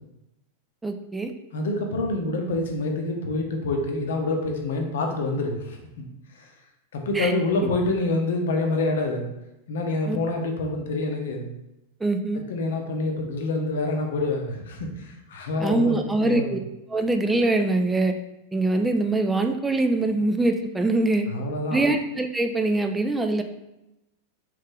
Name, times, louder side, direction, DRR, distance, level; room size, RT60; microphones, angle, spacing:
voice 1, 0.8-1.3 7.1-7.3 10.1-10.2 12.0-12.4 15.6-16.6 16.9-18.1 18.5-21.3 21.7-23.4, right 2 dB, 10° right, 6 dB, 0.3 m, -23 dB
voice 2, 1.5-6.1 6.4-6.5 6.9-9.3 9.7-11.5 12.5-16.5 21.3-21.9, left 2 dB, 60° left, 3 dB, 0.7 m, -27 dB
3.7 x 3.2 x 3.3 m, 0.91 s
figure-of-eight pair, 90°, 0 cm